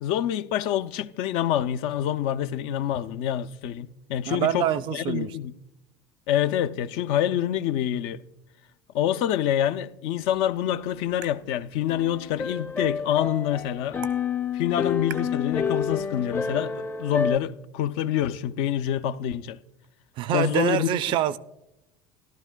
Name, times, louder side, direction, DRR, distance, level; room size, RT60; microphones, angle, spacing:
voice 1, 0.0-5.5 6.3-8.2 8.9-14.0 14.5-19.6 20.3-20.9, left 11 dB, 65° left, 0.4 m, -26 dB
voice 2, 4.3-5.4 20.2-21.4, right 12 dB, 55° right, 0.4 m, -25 dB
sound 1, 10.3-16.3, right 11 dB, 80° right, 0.9 m, -48 dB
sound 2, 11.9-17.4, left 6 dB, 25° left, 0.6 m, -29 dB
15.0 x 12.0 x 2.2 m
hypercardioid pair, 80°, 10 cm